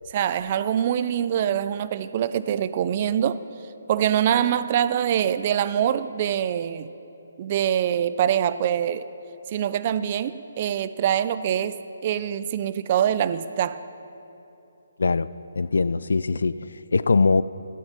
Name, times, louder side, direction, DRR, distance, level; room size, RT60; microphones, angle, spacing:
voice 1, 0.1-3.4 3.9-6.9 7.4-9.1 9.5-11.8 12.0-13.8, right 9 dB, 25° right, 14 dB, 0.3 m, -24 dB
voice 2, 15.0-15.3 15.6-17.4, left 4 dB, 75° left, 16 dB, 0.3 m, -22 dB
16.0 x 11.0 x 5.8 m, 2.9 s
hypercardioid pair, 175°, 0 cm